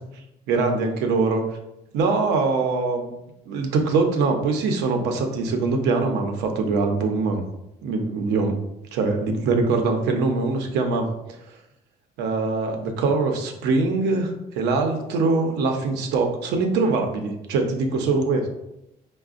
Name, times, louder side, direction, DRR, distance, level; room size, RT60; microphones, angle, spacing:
voice 1, 0.5-1.4 1.9-3.1 3.5-7.4 7.8-8.6 8.9-11.1 12.2-18.5, right 3 dB, 85° right, 4 dB, 0.6 m, -23 dB
4.7 x 2.1 x 2.5 m, 0.86 s
cardioid pair, 110°, 17 cm